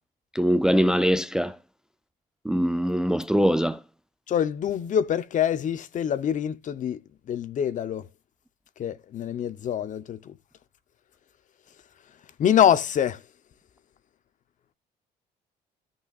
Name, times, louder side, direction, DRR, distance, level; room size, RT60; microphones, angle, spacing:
voice 1, 0.4-1.5 2.5-3.8, equal, 5° right, 0.4 m, -22 dB
voice 2, 4.3-7.0 7.3-8.0 8.8-10.3 12.4-13.2, left 9 dB, 50° left, 0.8 m, -25 dB
13.5 x 5.8 x 2.4 m
cardioid pair, 110°, 17 cm